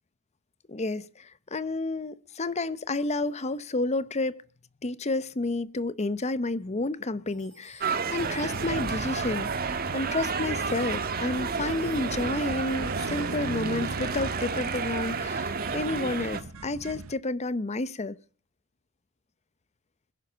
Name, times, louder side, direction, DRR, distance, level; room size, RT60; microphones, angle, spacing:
voice 1, 0.7-4.4 4.8-18.2, left 2 dB, 30° left, 0.7 m, -30 dB
sound 1, 7.3-9.3 10.7-13.6, right 2 dB, 5° left, 4.3 m, -57 dB
sound 2, 7.8-16.4, right 5 dB, 45° right, 1.5 m, -31 dB
sound 3, 8.2-17.1, right 3 dB, 70° right, 0.9 m, -38 dB
21.5 x 10.5 x 5.7 m
head